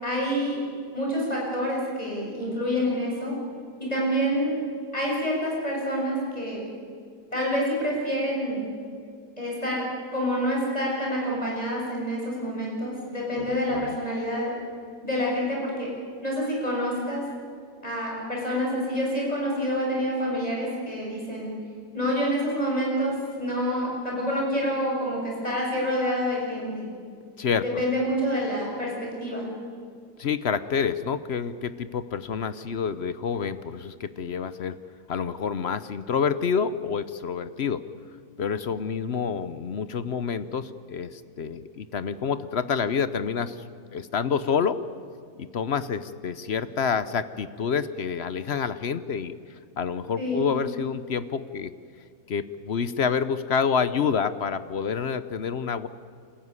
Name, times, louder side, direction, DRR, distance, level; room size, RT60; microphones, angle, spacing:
voice 1, 0.0-0.6 0.9-3.4 3.8-4.6 4.9-6.6 7.3-8.6 9.4-9.8 10.1-14.5 15.0-15.9 16.2-17.2 17.8-21.5 21.9-26.9 27.6-28.9 29.2-29.4 50.2-50.5, equal, 20° left, -3 dB, 7.0 m, -27 dB
voice 2, 13.4-14.0 27.4-27.8 30.2-34.8 35.1-37.8 38.4-43.6 43.9-44.8 45.4-51.7 52.3-55.9, left 6 dB, 55° left, 13 dB, 0.8 m, -28 dB
27.0 x 14.5 x 9.7 m, 2.2 s
omnidirectional pair, 1.7 m